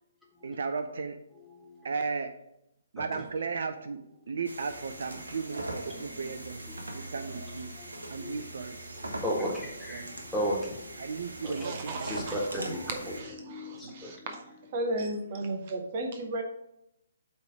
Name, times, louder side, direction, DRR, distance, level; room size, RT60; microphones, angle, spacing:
voice 1, 0.4-1.2 1.8-2.4 2.9-4.0 4.3-6.6 6.9-7.7 8.1-8.8 10.0-10.1 11.0-12.1 13.8-13.9, right 5 dB, 55° right, 8 dB, 0.5 m, -35 dB
voice 2, 1.3-1.9 3.0-3.3 4.2-4.3 5.6-8.4 9.2-14.3, equal, ahead, -6 dB, 1.7 m, -37 dB
sound 1, 4.4-13.2, right 1 dB, 75° right, 1.2 m, -41 dB
voice 3, 11.4-12.3 13.2-14.4 14.7-16.4, right 1 dB, 40° right, 4 dB, 0.9 m, -35 dB
8.2 x 3.3 x 4.9 m, 0.81 s
figure-of-eight pair, 130°, 0 cm